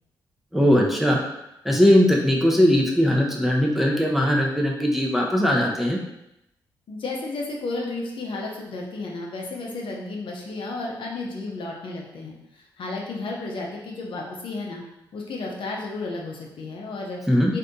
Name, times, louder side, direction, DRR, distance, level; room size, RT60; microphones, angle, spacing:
voice 1, 0.5-1.2 1.6-6.0 17.3-17.5, equal, ahead, -1 dB, 0.8 m, -19 dB
voice 2, 6.9-14.8 15.1-17.2 17.5-17.6, left 3 dB, 60° left, -1 dB, 0.7 m, -33 dB
2.7 x 2.5 x 3.6 m, 0.86 s
hypercardioid pair, 45°, 10 cm